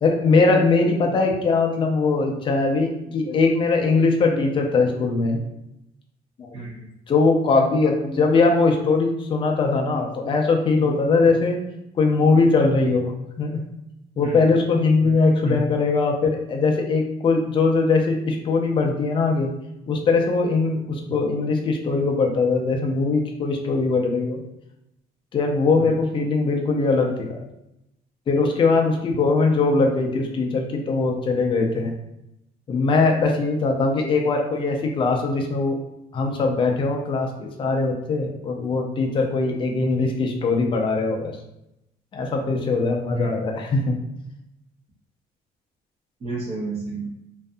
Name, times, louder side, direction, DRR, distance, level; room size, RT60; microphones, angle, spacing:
voice 1, 0.0-5.4 6.4-6.5 7.1-11.6 12.0-13.6 14.2-19.5 19.9-24.4 25.3-27.4 28.3-31.9 32.7-35.8 36.1-41.3 42.1-44.0, left 3 dB, 30° left, 2 dB, 0.4 m, -21 dB
voice 2, 6.5-6.9 14.2-14.5 15.0-15.1 15.4-15.6 25.8-25.9 43.1-43.4 46.2-47.1, right 2 dB, 40° right, -7 dB, 0.8 m, -30 dB
2.6 x 2.5 x 2.2 m, 0.84 s
cardioid pair, 110°, 17 cm